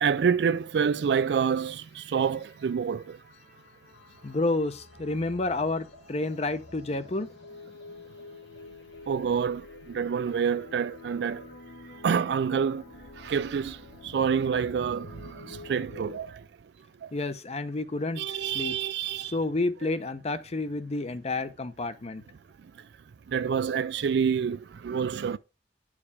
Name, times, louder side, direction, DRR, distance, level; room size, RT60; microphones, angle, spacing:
voice 1, 0.0-3.0 9.1-9.6 9.9-11.4 12.0-12.8 13.2-13.8 14.1-15.1 15.5-16.3 18.2-19.3 23.3-25.4, right 7 dB, 70° right, 0.4 m, -27 dB
sound 1, 1.0-16.2, left 3 dB, 85° left, 1.3 m, -49 dB
voice 2, 4.2-7.3 17.1-18.8 19.3-22.2, left 2 dB, 35° left, 0.7 m, -30 dB
9.6 x 4.9 x 3.4 m
head